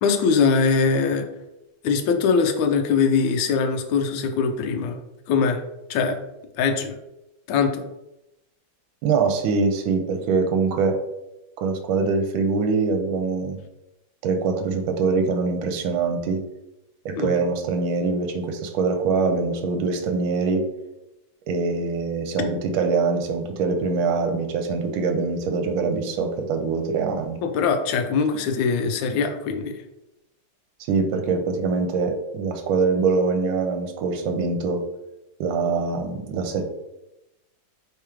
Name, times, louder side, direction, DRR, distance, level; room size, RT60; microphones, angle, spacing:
voice 1, 0.0-1.3 1.8-5.0 5.3-5.6 5.9-6.2 6.6-7.0 7.5-7.8 17.1-17.3 27.4-29.8, left 5 dB, 75° left, 5 dB, 1.2 m, -22 dB
voice 2, 9.0-11.0 11.6-13.6 14.2-16.4 17.0-20.6 21.5-27.4 30.9-34.8 35.4-36.6, right 4 dB, 75° right, 6 dB, 1.4 m, -23 dB
3.6 x 3.0 x 4.8 m, 0.91 s
omnidirectional pair, 2.3 m